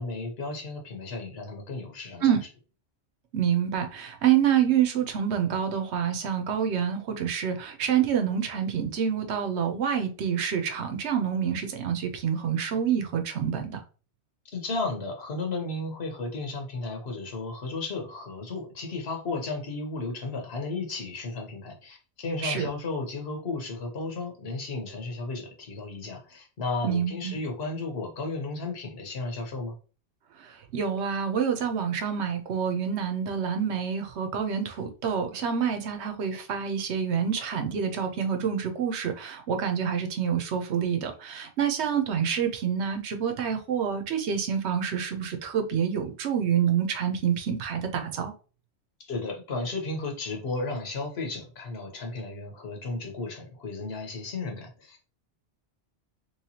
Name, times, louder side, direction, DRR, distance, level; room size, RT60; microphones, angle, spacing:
voice 1, 0.0-2.4 14.4-29.7 49.0-55.0, left 3 dB, 70° left, 1.2 m, -34 dB
voice 2, 3.3-13.8 22.4-22.7 26.8-27.4 30.4-48.3, right 8 dB, 90° right, 1.0 m, -27 dB
3.2 x 3.1 x 2.8 m
omnidirectional pair, 1.1 m